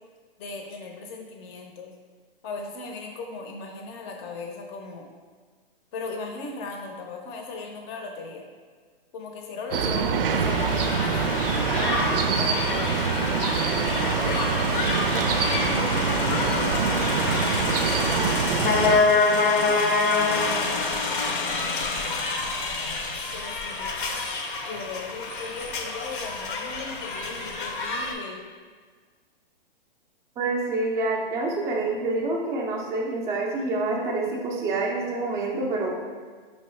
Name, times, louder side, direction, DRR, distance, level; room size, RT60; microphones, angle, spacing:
voice 1, 0.4-1.9 2.4-5.1 5.9-8.4 9.1-12.9 13.4-15.9 23.3-24.2 24.6-28.4, left 4 dB, 30° left, 1 dB, 0.6 m, -38 dB
sound 1, 9.7-19.0, right 6 dB, 65° right, 0.5 m, -25 dB
sound 2, 10.3-28.1, left 3 dB, 60° left, 0.7 m, -27 dB
voice 2, 18.8-20.1 30.4-36.0, right 2 dB, 10° right, -3 dB, 0.4 m, -28 dB
5.1 x 3.1 x 3.1 m, 1.5 s
hypercardioid pair, 135°, 30 cm